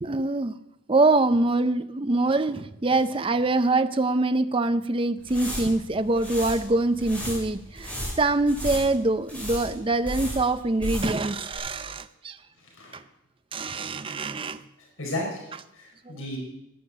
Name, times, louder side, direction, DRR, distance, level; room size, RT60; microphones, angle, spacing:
voice 1, 0.0-0.6 0.9-7.9 8.2-12.4 12.9-13.0 13.5-14.6 16.1-16.2, right 2 dB, 25° right, 11 dB, 0.5 m, -24 dB
sound 1, 5.2-11.3 11.5-11.6, equal, 5° left, 5.2 m, -35 dB
voice 2, 12.6-13.0 14.8-16.4, left 1 dB, 75° left, -2 dB, 5.1 m, -35 dB
11.5 x 9.8 x 9.5 m, 0.86 s
head